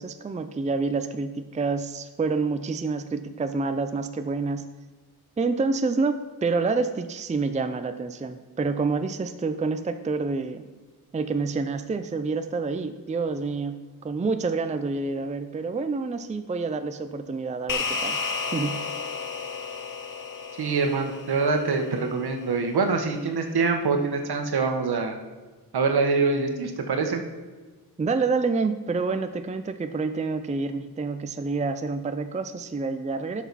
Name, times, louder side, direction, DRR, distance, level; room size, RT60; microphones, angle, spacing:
voice 1, 0.0-4.7 5.4-10.7 11.1-18.2 18.5-18.8 28.0-33.4, right 4 dB, 20° right, 9 dB, 0.5 m, -28 dB
sound 1, 17.7-22.3, left 5 dB, 55° left, 0.8 m, -32 dB
voice 2, 20.6-25.1 25.7-27.2, right 4 dB, 75° right, 5 dB, 1.3 m, -24 dB
11.5 x 6.1 x 4.1 m, 1.3 s
wide cardioid pair, 95°, 39 cm